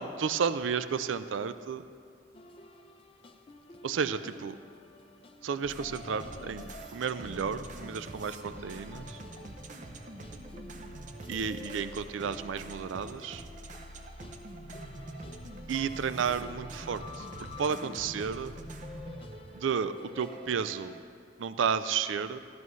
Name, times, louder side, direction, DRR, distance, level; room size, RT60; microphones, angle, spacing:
voice 1, 0.0-1.9 3.8-4.6 5.4-9.2 11.3-13.4 15.7-17.3 17.6-18.6 19.5-21.0 21.4-22.4, right 6 dB, 90° right, 12 dB, 0.4 m, -32 dB
sound 1, 2.3-21.1, left 3 dB, 30° left, 0.5 m, -51 dB
sound 2, 5.6-21.0, right 1 dB, 40° right, 0.7 m, -45 dB
14.5 x 12.5 x 3.1 m, 2.2 s
head